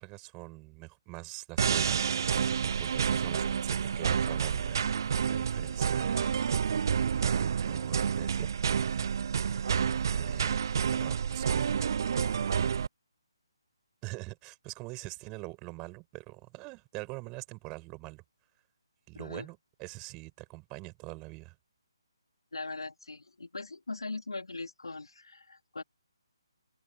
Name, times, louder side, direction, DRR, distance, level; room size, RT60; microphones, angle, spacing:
voice 1, 0.0-6.5 7.1-8.5 9.5-9.6 10.2-10.6 10.9-11.8 14.0-18.2 19.1-21.6, right 26 dB, 20° right, 5.9 m, -44 dB
sound 1, 1.6-12.9, right 7 dB, 50° right, 0.5 m, -29 dB
voice 2, 19.1-19.5 22.5-25.8, left 3 dB, 80° left, 4.1 m, -40 dB
open air
figure-of-eight pair, 145°, 3 cm